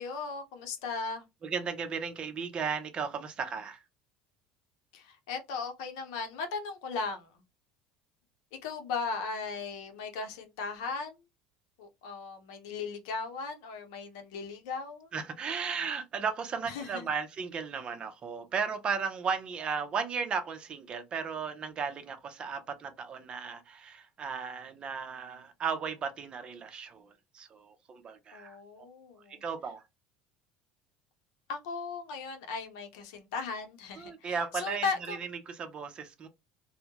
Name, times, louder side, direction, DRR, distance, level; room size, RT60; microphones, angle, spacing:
voice 1, 0.0-1.2 4.9-7.4 8.6-11.2 11.8-15.1 16.7-17.1 28.3-29.4 31.5-35.2, left 4 dB, 80° left, 0.6 m, -37 dB
voice 2, 1.4-3.8 15.1-28.6 29.3-29.8 34.0-36.3, right 6 dB, 40° right, 0.5 m, -35 dB
2.2 x 2.0 x 2.8 m
supercardioid pair, 95°, 3 cm